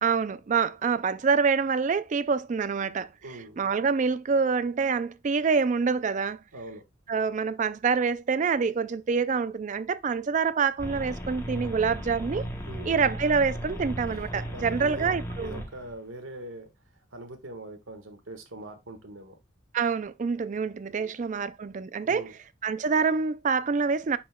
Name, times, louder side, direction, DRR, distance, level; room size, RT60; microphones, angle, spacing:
voice 1, 0.0-3.1 3.6-6.4 7.1-12.5 12.9-15.6 19.7-22.2 22.6-24.2, right 5 dB, 40° right, 0.3 m, -26 dB
voice 2, 3.2-3.6 6.5-6.8 12.7-13.0 14.5-16.7 17.1-19.4 20.9-21.5 22.0-22.3, right 2 dB, 80° right, 1.5 m, -42 dB
sound 1, 10.8-15.9, equal, 15° left, 0.9 m, -36 dB
10.0 x 4.3 x 2.2 m
head